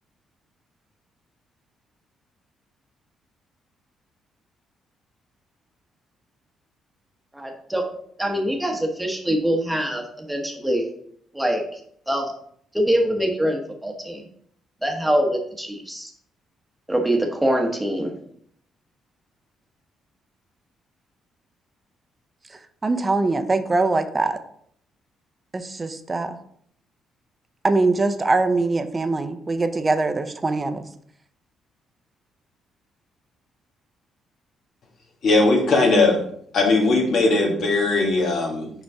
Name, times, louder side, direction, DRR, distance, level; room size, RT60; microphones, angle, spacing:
voice 1, 7.3-7.8 8.2-10.8 11.3-11.8 12.1-12.3 12.7-14.2 14.8-16.1 16.9-18.1, equal, 5° right, 1 dB, 1.0 m, -24 dB
voice 2, 22.8-24.4 25.5-26.4 27.6-30.8, right 3 dB, 25° right, 9 dB, 0.6 m, -22 dB
voice 3, 35.2-36.2 36.5-38.7, left 3 dB, 65° left, 0 dB, 1.7 m, -19 dB
5.3 x 5.1 x 3.5 m, 0.65 s
cardioid pair, 90°, 0 cm